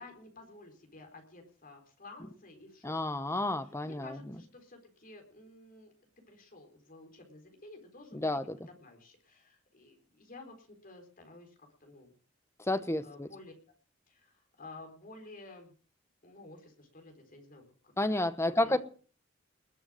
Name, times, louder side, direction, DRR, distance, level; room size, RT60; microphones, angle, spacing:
voice 1, 0.0-3.0 3.8-5.9 6.3-8.4 8.7-12.1 13.0-13.5 14.1-15.7 16.2-18.8, left 2 dB, 45° left, 4 dB, 4.2 m, -52 dB
voice 2, 2.8-4.2 8.1-8.6 12.7-13.3 18.0-18.8, left 1 dB, 15° left, 12 dB, 1.1 m, -30 dB
21.0 x 8.0 x 7.6 m, 0.41 s
head